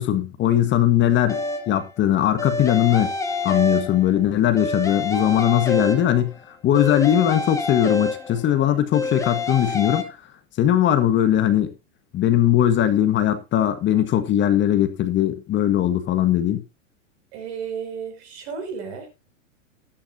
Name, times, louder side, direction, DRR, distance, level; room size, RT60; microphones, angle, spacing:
voice 1, 0.0-3.1 3.4-6.4 6.6-10.2 10.6-11.7 12.1-16.6, left 11 dB, 30° left, 1.4 m, -20 dB
sound 1, 1.3-1.9 2.4-4.2 4.6-6.4 6.7-8.5 8.9-10.0, left 3 dB, 10° left, 2.1 m, -27 dB
voice 2, 17.3-19.1, right 6 dB, 55° right, 6.0 m, -33 dB
13.0 x 11.5 x 2.7 m
hypercardioid pair, 115°, 38 cm